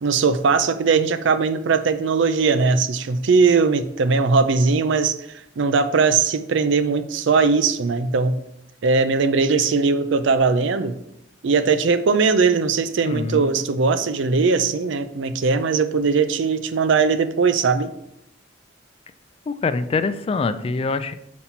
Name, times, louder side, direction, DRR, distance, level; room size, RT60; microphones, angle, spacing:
voice 1, 0.0-5.2 5.6-8.4 8.8-11.0 11.4-17.9, right 4 dB, 70° right, 12 dB, 0.4 m, -19 dB
voice 2, 13.1-13.6 19.5-21.1, left 4 dB, 30° left, 11 dB, 0.3 m, -24 dB
5.7 x 4.2 x 4.4 m, 0.79 s
head